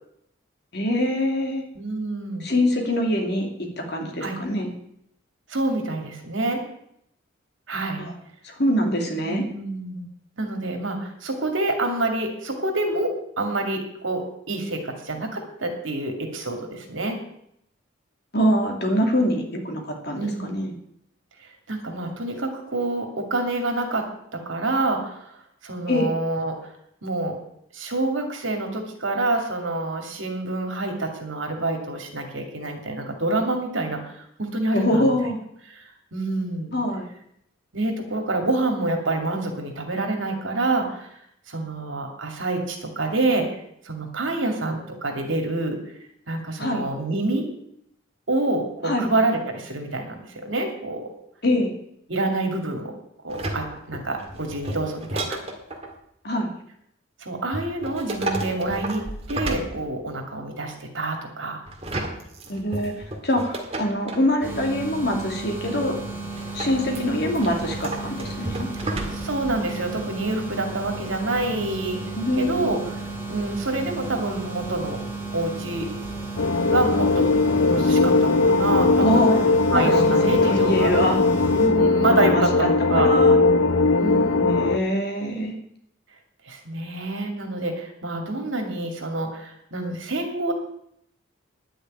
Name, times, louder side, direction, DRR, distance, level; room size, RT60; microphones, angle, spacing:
voice 1, 0.7-1.6 2.4-3.5 3.8-4.7 8.0-8.1 8.4-9.4 18.3-20.7 25.9-26.1 34.7-35.4 36.7-37.1 46.6-46.8 48.8-49.1 51.4-51.7 56.2-56.5 62.5-62.9 63.2-66.0 66.5-68.7 72.1-72.7 79.0-79.4 79.7-81.2 82.0-82.4 82.9-83.4 84.5-85.5, equal, 50° left, 2 dB, 2.5 m, -24 dB
voice 2, 1.7-2.5 4.2-4.4 5.5-6.6 7.7-8.1 9.2-10.1 10.4-17.2 20.2-20.5 21.7-25.4 25.6-26.6 27.0-27.4 27.7-35.0 35.7-35.8 36.1-36.7 37.7-41.1 41.5-43.5 43.8-45.8 46.3-47.5 48.3-51.1 52.1-52.9 53.2-55.4 57.2-61.6 66.8-67.2 68.8-72.0 72.4-72.8 73.3-75.0 75.3-75.9 76.6-77.3 77.6-79.2 79.7-80.9 81.5-83.1 84.0-84.7 86.5-90.5, right 2 dB, 70° right, 3 dB, 2.5 m, -27 dB
sound 1, 53.3-55.9 57.5-60.3 61.7-64.3 66.4-69.5 69.8-69.9, right 1 dB, 30° right, 1.8 m, -32 dB
sound 2, 64.4-81.7, right 2 dB, 5° right, 3.1 m, -34 dB
sound 3, 76.4-84.8, left 3 dB, 75° left, 0.7 m, -19 dB
10.5 x 6.7 x 9.1 m, 0.73 s
head